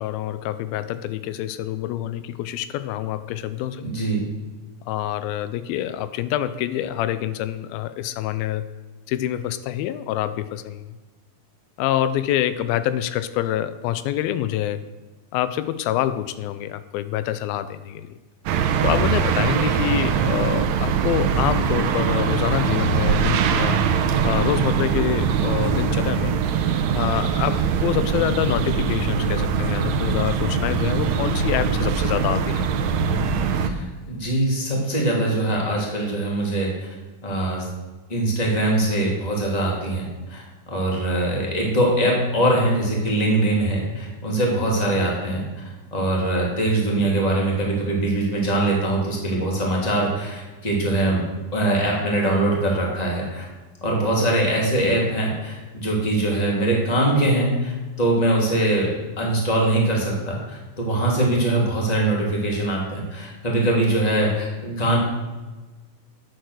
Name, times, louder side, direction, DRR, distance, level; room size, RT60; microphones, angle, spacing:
voice 1, 0.0-3.8 4.9-8.6 9.1-10.8 11.8-14.8 15.3-18.0 18.8-23.8 24.2-26.3 26.9-32.6, left 12 dB, 90° left, 13 dB, 2.4 m, -26 dB
voice 2, 3.8-4.3 33.6-36.9 37.2-37.7 38.1-40.0 40.3-45.4 45.9-51.2 51.5-53.5 53.8-65.0, right 1 dB, 15° left, -2 dB, 2.0 m, -22 dB
sound 1, 18.5-33.7, right 6 dB, 80° right, 1.5 m, -22 dB
9.4 x 9.0 x 6.4 m, 1.2 s
omnidirectional pair, 4.2 m